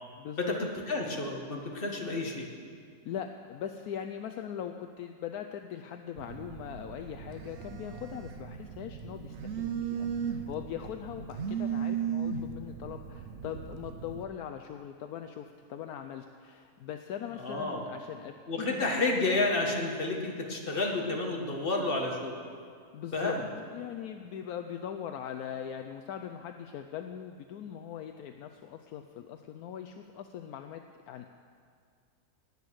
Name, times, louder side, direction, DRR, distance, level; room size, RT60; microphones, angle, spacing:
voice 1, 0.2-0.6 3.0-18.9 22.9-23.4 23.6-31.3, left 9 dB, 75° left, 6 dB, 1.1 m, -41 dB
voice 2, 0.9-2.5 17.4-17.9 18.5-22.3 23.1-23.4, left 2 dB, 35° left, 0 dB, 1.9 m, -30 dB
Telephone, 6.2-14.2, right 7 dB, 55° right, 0.9 m, -37 dB
19.0 x 8.4 x 6.3 m, 2.2 s
omnidirectional pair, 1.7 m